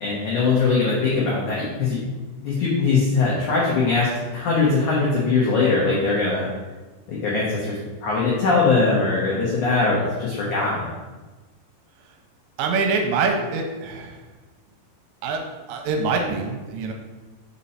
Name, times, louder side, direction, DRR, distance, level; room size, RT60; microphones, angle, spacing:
voice 1, 0.0-2.0 2.4-6.5 7.1-10.9, left 4 dB, 85° left, -5 dB, 1.7 m, -21 dB
voice 2, 12.6-14.2 15.2-15.4 15.7-16.9, right 4 dB, 85° right, 3 dB, 2.8 m, -24 dB
6.1 x 4.3 x 5.5 m, 1.2 s
omnidirectional pair, 5.3 m